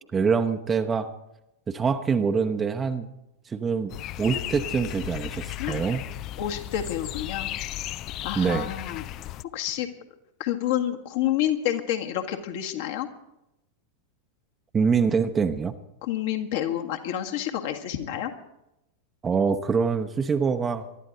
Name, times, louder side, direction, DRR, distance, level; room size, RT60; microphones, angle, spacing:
voice 1, 0.1-1.1 1.7-3.1 3.5-6.0 8.3-8.7 14.7-15.7 19.2-20.9, right 5 dB, 20° right, 7 dB, 0.9 m, -25 dB
sound 1, 3.9-9.4, left 14 dB, 35° left, 0.4 m, -35 dB
voice 2, 6.4-7.5 8.2-9.0 9.5-9.9 10.4-13.1 16.0-18.3, left 11 dB, 50° left, 4 dB, 1.7 m, -28 dB
23.0 x 12.5 x 3.9 m, 0.88 s
figure-of-eight pair, 90°, 0 cm